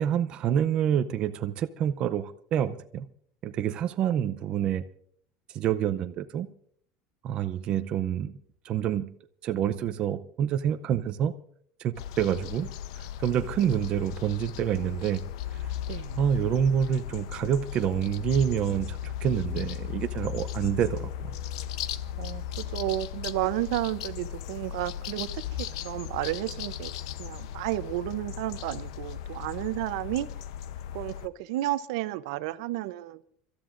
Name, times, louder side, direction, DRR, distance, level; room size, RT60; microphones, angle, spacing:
voice 1, 0.0-3.1 3.4-4.8 5.5-6.5 7.2-8.3 8.6-9.1 9.4-11.3 11.8-15.2 16.2-21.3, right 9 dB, 35° right, 0.6 m, -27 dB
sound 1, 12.0-31.3, left 10 dB, 85° left, 0.7 m, -36 dB
voice 2, 15.9-16.2 22.2-26.9 27.2-30.3 30.9-33.2, right 16 dB, 75° right, 0.7 m, -32 dB
29.5 x 13.5 x 2.6 m
cardioid pair, 160°, 3 cm